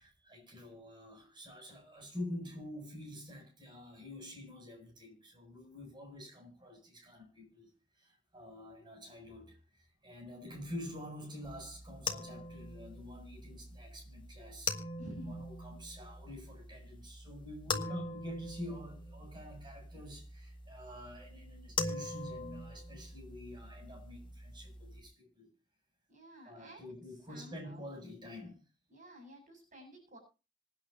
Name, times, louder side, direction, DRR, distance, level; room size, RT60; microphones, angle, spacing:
voice 1, 0.0-14.7 15.2-25.5 26.4-28.6, left 1 dB, 25° right, 7.9 m, -48 dB
sound 1, 11.4-25.0, left 3 dB, 25° left, 1.9 m, -43 dB
voice 2, 15.0-15.5 26.1-26.9 27.3-27.8 28.9-30.2, equal, 40° right, 7.5 m, -52 dB
26.0 x 9.4 x 2.9 m
head